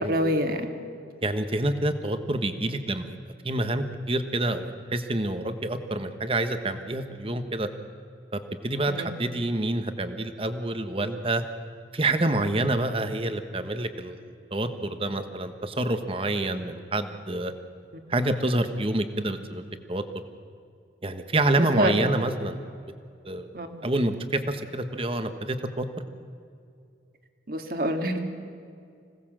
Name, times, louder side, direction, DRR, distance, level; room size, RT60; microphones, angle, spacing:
voice 1, 0.0-0.7 8.9-9.1 21.8-21.9 23.5-23.7 27.5-28.2, equal, 50° right, 5 dB, 2.0 m, -25 dB
voice 2, 1.2-3.2 3.4-7.7 8.3-11.4 11.9-17.5 18.1-20.0 21.0-22.6 23.2-23.5 23.8-25.9, right 2 dB, 30° right, 9 dB, 1.2 m, -27 dB
26.0 x 18.0 x 7.5 m, 2.4 s
head